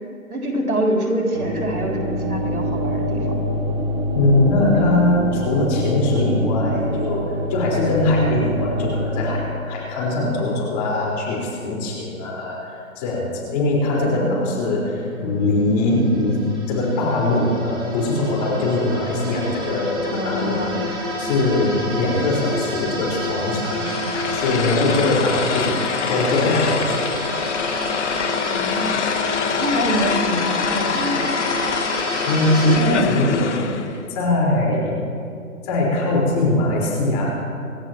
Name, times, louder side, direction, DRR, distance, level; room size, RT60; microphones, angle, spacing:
voice 1, 0.3-3.5 14.1-14.7 20.1-20.7 28.5-29.0 29.6-31.4, right 1 dB, 90° right, -1 dB, 3.9 m, -25 dB
sound 1, 1.3-9.4, equal, 30° right, 1.6 m, -25 dB
voice 2, 4.1-23.9 24.3-27.2 32.3-34.9 35.6-37.3, left 2 dB, 30° left, -3 dB, 4.7 m, -21 dB
sound 2, 15.1-32.8, equal, 10° right, 2.2 m, -30 dB
sound 3, 23.6-34.0, left 7 dB, 55° left, 1.1 m, -25 dB
27.5 x 13.5 x 3.0 m, 2.5 s
hypercardioid pair, 145°, 43 cm